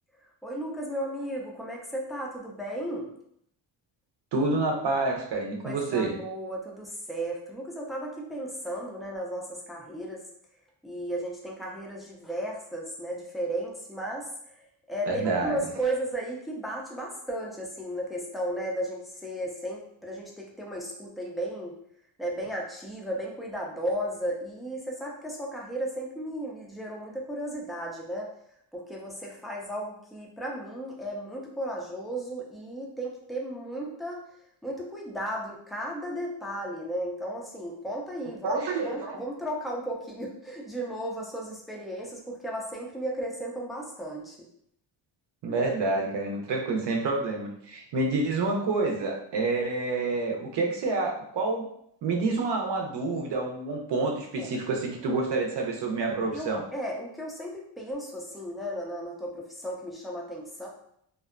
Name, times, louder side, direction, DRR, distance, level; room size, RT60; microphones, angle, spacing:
voice 1, 0.4-3.1 5.6-10.2 10.8-14.5 14.9-21.8 22.2-28.3 28.7-34.2 34.6-44.4 54.4-54.5 56.3-60.7, right 1 dB, ahead, -2 dB, 0.3 m, -35 dB
voice 2, 4.3-6.2 15.1-15.6 38.4-39.2 45.4-51.7 52.0-56.6, right 3 dB, 65° right, 1 dB, 0.7 m, -28 dB
2.6 x 2.1 x 2.4 m, 0.70 s
cardioid pair, 120°, 45 cm